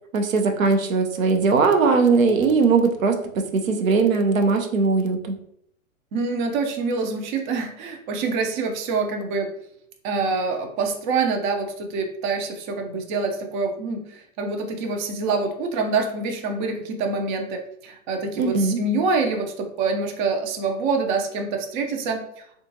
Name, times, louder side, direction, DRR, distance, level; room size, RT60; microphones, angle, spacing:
voice 1, 0.1-5.3 18.4-18.8, right 4 dB, 75° right, 5 dB, 0.7 m, -20 dB
voice 2, 6.1-9.6 10.0-22.5, right 4 dB, 35° right, 4 dB, 0.5 m, -26 dB
3.6 x 2.4 x 2.7 m, 0.71 s
figure-of-eight pair, 115°, 41 cm